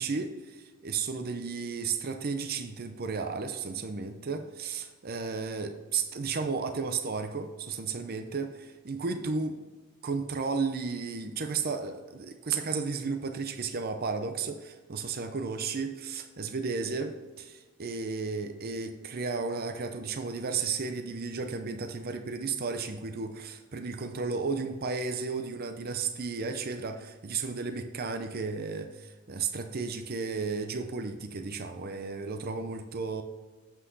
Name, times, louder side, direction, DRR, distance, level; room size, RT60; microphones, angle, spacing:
voice 1, 0.0-9.6 10.0-33.2, right 4 dB, 45° right, 6 dB, 0.6 m, -33 dB
7.5 x 6.2 x 4.0 m, 1.3 s
head